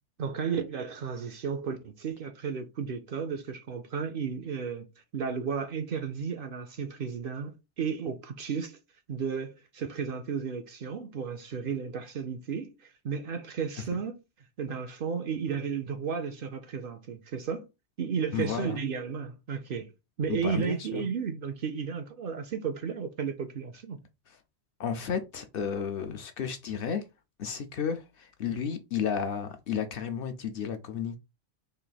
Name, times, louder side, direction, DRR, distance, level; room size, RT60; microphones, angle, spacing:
voice 1, 0.2-4.9 5.1-8.8 9.1-14.2 14.6-17.7 18.0-19.9 20.2-24.0, right 6 dB, 60° right, 0.6 m, -33 dB
voice 2, 18.3-18.8 20.3-21.0 24.3-24.4 24.8-27.0 27.4-31.2, left 7 dB, 65° left, 0.7 m, -32 dB
3.3 x 2.5 x 3.9 m
omnidirectional pair, 1.2 m